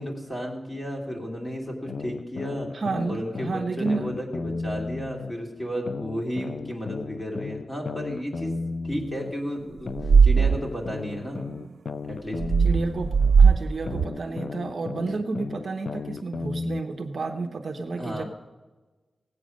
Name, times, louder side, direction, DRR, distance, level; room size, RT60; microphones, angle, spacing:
voice 1, 0.0-2.7 3.1-8.5 8.8-11.4 12.0-12.4 17.9-18.2, equal, 15° left, 0 dB, 2.6 m, -33 dB
sound 1, 1.9-5.3 5.9-9.3 9.9-13.3 13.9-16.8, left 4 dB, 50° left, 0.4 m, -34 dB
voice 2, 2.7-4.1 12.6-18.2, right 3 dB, 50° right, 5 dB, 0.8 m, -31 dB
sound 2, 10.0-10.6 12.4-13.6 13.9-14.0, right 5 dB, 80° right, 0.3 m, -17 dB
17.5 x 8.4 x 6.3 m, 1.2 s
wide cardioid pair, 175°, 0 cm